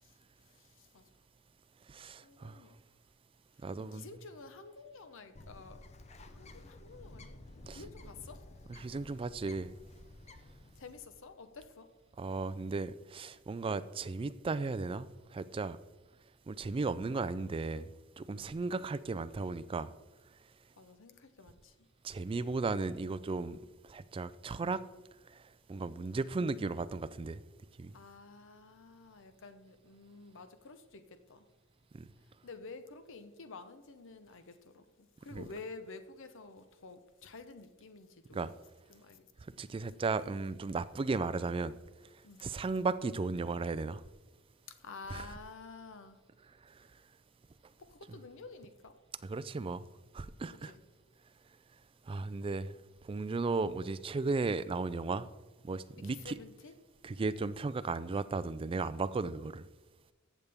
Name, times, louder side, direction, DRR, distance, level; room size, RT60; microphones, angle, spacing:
voice 1, 0.0-1.1 2.2-3.0 3.5-5.9 6.3-7.4 7.7-8.5 10.7-11.9 18.4-18.6 20.7-21.9 27.9-31.5 32.2-38.6 38.9-39.3 42.2-42.5 44.8-46.2 46.9-47.0 47.8-49.0 50.5-50.8 56.0-56.8, left 4 dB, 65° left, 0.8 m, -51 dB
voice 2, 1.9-2.6 3.6-4.1 7.7-7.8 8.8-9.7 12.2-15.8 16.5-17.9 18.2-19.9 22.0-24.8 25.3-25.4 25.7-27.4 27.8-27.9 31.9-32.1 35.3-35.4 38.3-38.5 39.6-41.7 42.4-44.0 45.1-45.2 49.3-49.9 50.1-50.7 52.1-52.8 53.0-55.3 55.6-56.4 57.0-59.7, right 3 dB, 25° right, 0.3 m, -35 dB
Bird, 5.3-11.3, left 2 dB, 30° left, 0.6 m, -53 dB
14.5 x 7.1 x 3.5 m
head